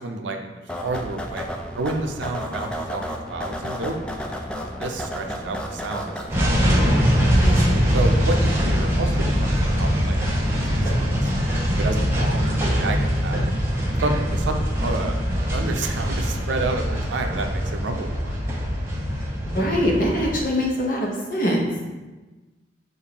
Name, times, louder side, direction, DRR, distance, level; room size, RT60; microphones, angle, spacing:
voice 1, 0.0-1.5 1.7-3.0 3.3-4.0 4.8-6.5 7.9-11.3 11.7-13.4 14.0-15.2 15.5-18.3, right 2 dB, 85° right, 5 dB, 0.5 m, -30 dB
sound 1, 0.7-6.5, equal, 5° left, 0.3 m, -32 dB
sound 2, 6.3-20.4, equal, 15° right, 0.7 m, -22 dB
voice 2, 7.4-7.9 19.4-21.6, equal, 50° left, -1 dB, 0.8 m, -23 dB
6.6 x 2.5 x 2.9 m, 1.2 s
head